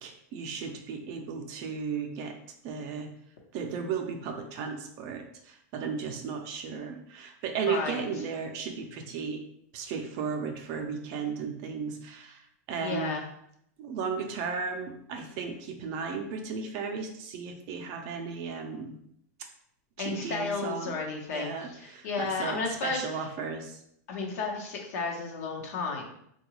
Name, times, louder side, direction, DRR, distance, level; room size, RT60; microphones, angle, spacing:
voice 1, 0.0-2.4 2.6-3.1 3.5-9.4 9.7-13.2 13.8-19.0 20.0-21.0 21.3-23.8, right 5 dB, 40° right, 4 dB, 0.5 m, -35 dB
voice 2, 7.6-8.0 12.8-13.2 20.0-23.1 24.1-26.0, left 4 dB, 65° left, 0 dB, 0.9 m, -33 dB
3.7 x 2.3 x 3.0 m, 0.72 s
supercardioid pair, 145°, 9 cm